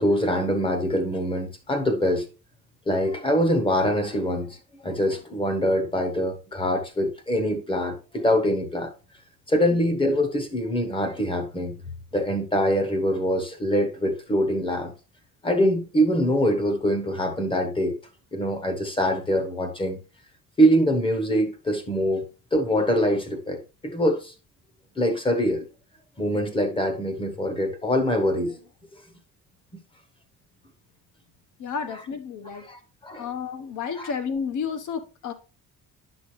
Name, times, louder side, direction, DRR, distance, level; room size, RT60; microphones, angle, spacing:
voice 1, 0.0-2.3 2.9-8.9 9.5-11.8 12.1-14.9 15.4-18.0 18.3-20.0 20.6-22.2 22.5-24.3 25.0-25.7 26.2-28.6 31.9-32.0 32.6-33.3 34.0-34.1, equal, 15° left, 1.0 m, -24 dB
voice 2, 31.6-32.7 33.2-35.3, left 6 dB, 55° left, 1.1 m, -31 dB
9.3 x 6.2 x 3.2 m
cardioid pair, 165°, 37 cm